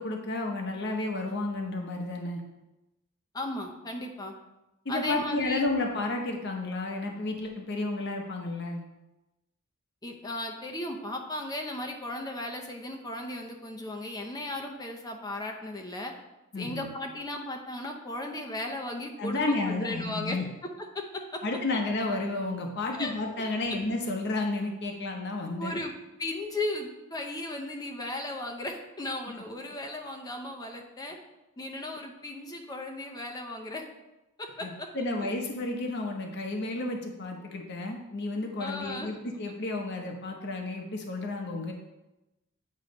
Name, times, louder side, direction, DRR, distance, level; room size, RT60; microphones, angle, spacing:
voice 1, 0.0-2.4 4.8-8.8 16.5-16.9 19.2-20.5 21.4-25.8 34.6-41.7, left 2 dB, 55° left, 2 dB, 0.9 m, -32 dB
voice 2, 3.3-4.3 4.9-5.7 10.0-16.1 16.6-20.4 20.9-21.4 22.9-23.1 25.6-25.9 26.2-31.2 31.6-33.8 34.4-34.9 38.6-39.2, left 1 dB, 20° left, 2 dB, 0.6 m, -36 dB
8.5 x 3.1 x 5.2 m, 0.99 s
head